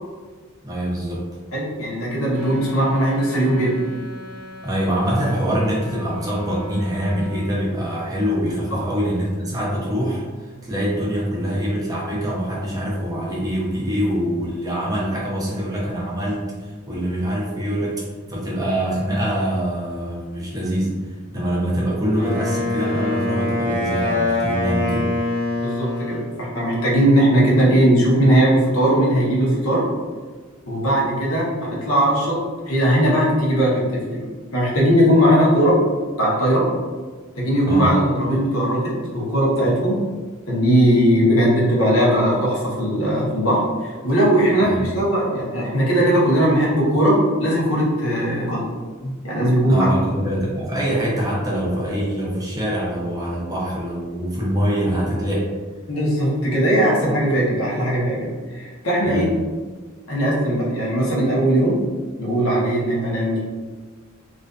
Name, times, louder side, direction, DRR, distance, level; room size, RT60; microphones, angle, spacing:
voice 1, 0.6-1.2 4.6-10.2 10.6-18.0 18.3-25.1 37.6-37.9 44.6-44.8 49.7-55.5 59.0-59.3, equal, 15° right, -5 dB, 0.5 m, -24 dB
voice 2, 1.5-3.8 8.7-8.8 25.6-29.8 30.7-32.4 32.7-34.2 34.5-35.8 36.2-36.7 37.4-40.0 40.5-48.6 49.0-49.9 55.9-59.3 60.1-61.8 62.2-63.4, equal, 70° left, -5 dB, 0.8 m, -19 dB
Wind instrument woodwind instrument, 2.3-7.5, left 2 dB, 65° right, 0.6 m, -40 dB
Wind instrument woodwind instrument 2, 22.2-26.3, left 2 dB, 40° left, 1.1 m, -24 dB
2.4 x 2.4 x 2.3 m, 1.4 s
head